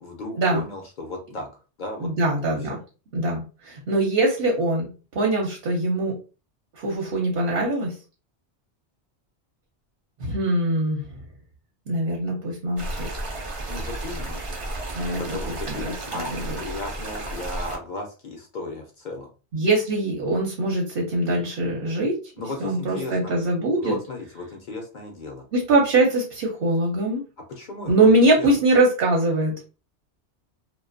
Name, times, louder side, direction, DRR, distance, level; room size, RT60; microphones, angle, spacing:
voice 1, 0.0-1.5 1.8-2.3 13.7-14.4 15.2-19.3 22.4-23.3 23.8-25.4 27.5-28.1 28.4-28.6, left 2 dB, 55° left, 2 dB, 0.5 m, -35 dB
voice 2, 2.0-2.8 3.1-6.2 6.8-7.9 10.2-11.0 11.9-13.1 14.9-15.4 15.7-16.6 19.5-22.2 22.6-24.0 25.5-27.2 27.9-29.6, right 2 dB, 60° right, -1 dB, 0.8 m, -22 dB
sound 1, 12.8-17.8, right 2 dB, 45° right, 0.4 m, -32 dB
2.4 x 2.2 x 2.4 m, 0.33 s
omnidirectional pair, 1.1 m